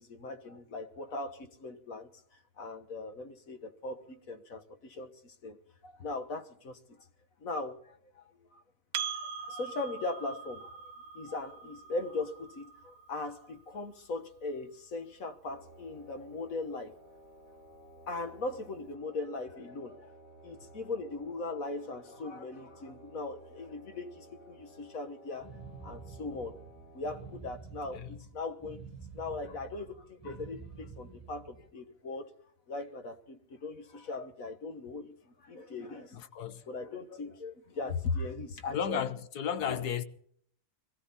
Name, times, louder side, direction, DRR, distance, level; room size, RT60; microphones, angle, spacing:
voice 1, 0.0-2.1 2.6-5.6 5.8-7.1 7.4-8.6 9.4-10.7 11.1-16.9 18.1-20.1 20.4-25.5 25.8-26.5 26.9-28.8 29.1-32.3 32.7-36.2 36.7-39.0 39.7-39.8, left 3 dB, 60° left, 1.8 m, -39 dB
Percussion, 8.9-13.8, right 7 dB, 70° right, 1.3 m, -42 dB
sound 1, 15.5-27.4, equal, 45° left, 3.6 m, -55 dB
sound 2, 25.4-31.7, right 5 dB, 15° left, 3.6 m, -49 dB
voice 2, 36.1-36.7 38.7-40.0, left 8 dB, 85° left, 1.6 m, -34 dB
22.0 x 15.0 x 4.2 m
omnidirectional pair, 1.6 m